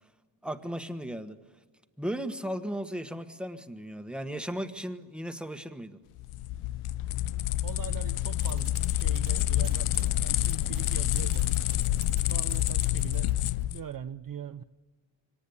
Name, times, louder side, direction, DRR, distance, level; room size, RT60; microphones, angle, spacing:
voice 1, 0.4-1.4 2.0-6.0, equal, ahead, 1.4 m, -36 dB
sound 1, 6.2-13.8, left 14 dB, 80° left, 0.7 m, -28 dB
voice 2, 7.6-11.6 12.3-13.3 13.7-14.6, right 9 dB, 45° right, 0.6 m, -42 dB
sound 2, 8.4-13.7, right 8 dB, 75° right, 1.9 m, -51 dB
24.5 x 18.5 x 8.5 m
cardioid pair, 95°, 49 cm